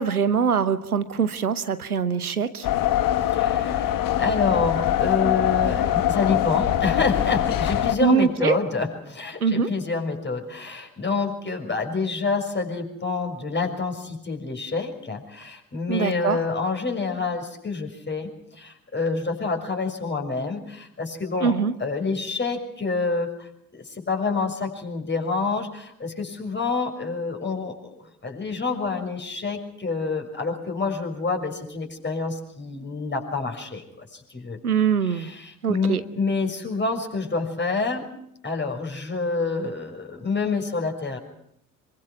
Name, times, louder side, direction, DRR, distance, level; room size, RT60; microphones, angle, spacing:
voice 1, 0.0-2.7 8.0-8.6 9.4-9.7 15.9-16.4 21.4-21.7 34.6-35.3 35.6-36.0, right 6 dB, 90° right, 14 dB, 0.9 m, -23 dB
sound 1, 2.6-8.0, left 12 dB, 50° left, 1.6 m, -23 dB
voice 2, 3.2-21.5 21.8-27.9 28.2-34.6 35.0-38.1 38.4-41.2, left 4 dB, 25° left, 3 dB, 6.1 m, -28 dB
26.5 x 23.0 x 6.2 m, 0.73 s
figure-of-eight pair, 50°, 43 cm